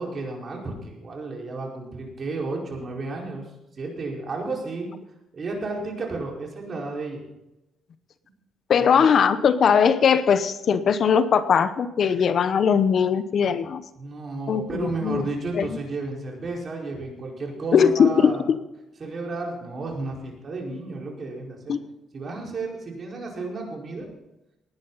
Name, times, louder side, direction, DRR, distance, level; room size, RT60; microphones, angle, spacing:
voice 1, 0.0-3.5 3.7-4.9 5.3-7.2 8.8-8.9 14.0-18.4 19.0-21.8 22.1-24.1, right 3 dB, 45° right, -1 dB, 4.9 m, -32 dB
voice 2, 8.7-13.8 14.5-15.3 15.5-15.7 17.7-18.3 21.7-21.8, left 7 dB, 60° left, 12 dB, 0.9 m, -20 dB
19.0 x 11.0 x 4.1 m, 0.91 s
cardioid pair, 90°, 0 cm